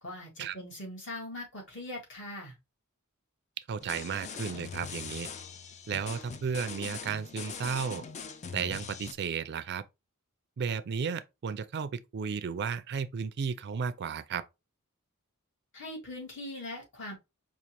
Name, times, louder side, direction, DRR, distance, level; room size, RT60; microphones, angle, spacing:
voice 1, 0.0-2.6 15.7-17.2, left 1 dB, 60° left, 1.8 m, -41 dB
voice 2, 3.7-5.3 5.9-8.0 8.5-9.8 10.6-14.4, right 6 dB, 50° right, 0.4 m, -34 dB
sound 1, 3.8-9.1, left 5 dB, 35° left, 0.4 m, -42 dB
5.1 x 2.4 x 2.9 m
head